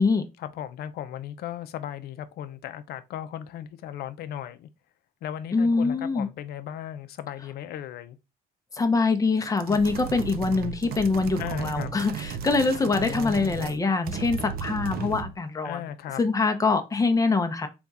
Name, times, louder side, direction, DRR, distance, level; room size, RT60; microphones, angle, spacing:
voice 1, 0.4-4.7 5.2-8.2 11.4-11.9 12.9-13.7 15.6-16.2, left 10 dB, 70° left, 0.5 m, -36 dB
voice 2, 5.5-6.3 8.7-15.8 16.2-17.7, left 4 dB, 20° left, 0.6 m, -24 dB
sound 1, 9.6-13.8 14.0-15.4, right 7 dB, 65° right, 0.5 m, -35 dB
3.5 x 2.4 x 4.0 m
cardioid pair, 110°, 17 cm